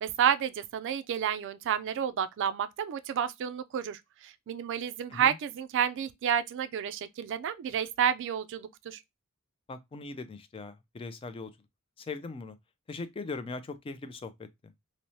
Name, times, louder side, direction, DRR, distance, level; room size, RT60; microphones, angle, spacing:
voice 1, 0.0-9.0, right 9 dB, 60° right, 0.3 m, -30 dB
voice 2, 9.7-11.5 12.0-12.6 12.9-14.5, left 3 dB, 25° left, 0.3 m, -40 dB
3.0 x 2.0 x 2.7 m
head